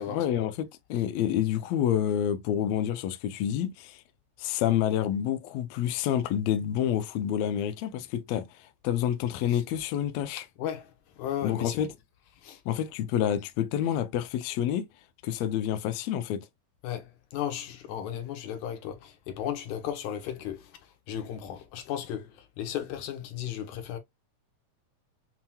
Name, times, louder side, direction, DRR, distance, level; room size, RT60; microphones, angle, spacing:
voice 1, 0.1-4.0 4.4-10.5 11.4-11.9 12.6-14.9 15.2-16.4, left 10 dB, 85° left, 1.5 m, -28 dB
voice 2, 10.6-10.9 11.2-11.8 12.4-12.6 16.8-20.7 21.1-24.0, left 10 dB, 70° left, 2.2 m, -35 dB
7.3 x 2.8 x 2.2 m
omnidirectional pair, 3.7 m